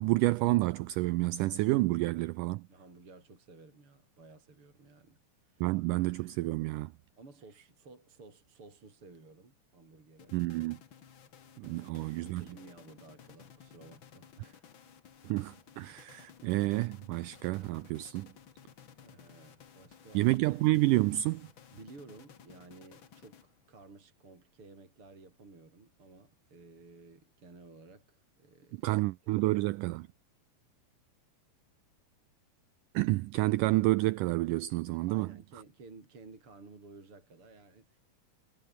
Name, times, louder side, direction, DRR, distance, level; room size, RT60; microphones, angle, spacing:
voice 1, 0.0-2.6 5.6-6.9 10.3-10.8 11.6-12.4 15.3-18.3 20.1-21.5 28.8-30.1 33.0-35.3, right 19 dB, 85° right, 1.8 m, -29 dB
voice 2, 2.7-5.7 7.2-10.4 11.6-14.7 19.0-20.3 21.7-28.9 29.2-29.3 35.1-38.0, right 3 dB, 35° right, 6.0 m, -55 dB
sound 1, 10.2-23.8, left 8 dB, 45° left, 1.8 m, -56 dB
omnidirectional pair, 4.3 m